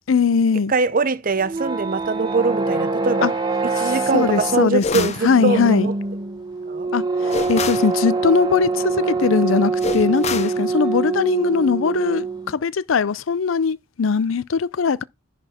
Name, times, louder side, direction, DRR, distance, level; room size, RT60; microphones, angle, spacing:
voice 1, 0.1-0.7 3.2-3.3 4.1-5.9 6.9-7.0 7.5-15.0, left 5 dB, 80° left, 0.5 m, -20 dB
voice 2, 0.7-3.3 3.8-5.9 6.7-6.9, right 4 dB, 45° right, 0.7 m, -22 dB
sound 1, 1.3-12.5, right 3 dB, 20° right, 1.4 m, -24 dB
sound 2, 4.8-5.3 7.3-7.9 9.8-10.6, left 5 dB, 35° left, 0.6 m, -26 dB
10.5 x 4.2 x 4.3 m
head